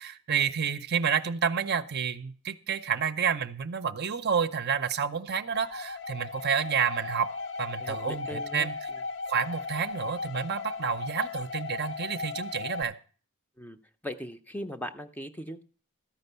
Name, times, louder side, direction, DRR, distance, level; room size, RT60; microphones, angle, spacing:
voice 1, 0.0-7.3 7.6-8.9 9.3-13.0, right 7 dB, 50° right, 10 dB, 0.6 m, -29 dB
sound 1, 5.5-12.8, left 4 dB, 55° left, 0.6 m, -36 dB
voice 2, 7.8-8.7 13.6-13.8 14.0-15.6, equal, 5° left, 7 dB, 0.5 m, -39 dB
13.5 x 5.3 x 6.7 m, 0.41 s
head